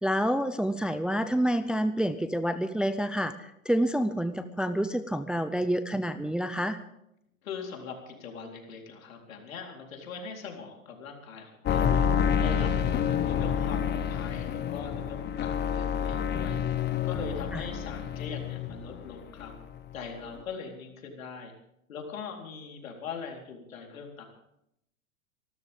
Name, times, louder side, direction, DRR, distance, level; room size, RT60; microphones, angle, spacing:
voice 1, 0.0-6.8 17.5-17.6, equal, ahead, 10 dB, 0.5 m, -28 dB
voice 2, 7.4-12.1 12.4-16.6 17.0-19.5 19.9-21.5 21.9-24.3, left 5 dB, 75° left, 2 dB, 4.1 m, -41 dB
sound 1, 11.7-19.1 19.4-20.1 20.3-20.4, left 8 dB, 25° left, 1.2 m, -28 dB
25.5 x 13.5 x 3.6 m, 0.79 s
hypercardioid pair, 100°, 41 cm